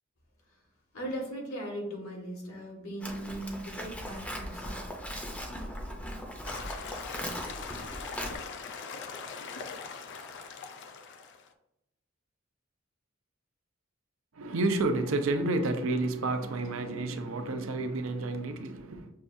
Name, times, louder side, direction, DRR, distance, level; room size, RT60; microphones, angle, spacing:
voice 1, 0.9-5.0 5.9-6.1, right 1 dB, 80° left, 1.4 m, -39 dB
Livestock farm animals working animals, 3.0-8.3, equal, 5° left, 0.5 m, -39 dB
sound 1, 6.4-11.5, left 5 dB, 55° left, 0.4 m, -41 dB
voice 2, 14.3-19.1, right 2 dB, 70° right, 0.5 m, -30 dB
6.5 x 2.3 x 2.6 m
head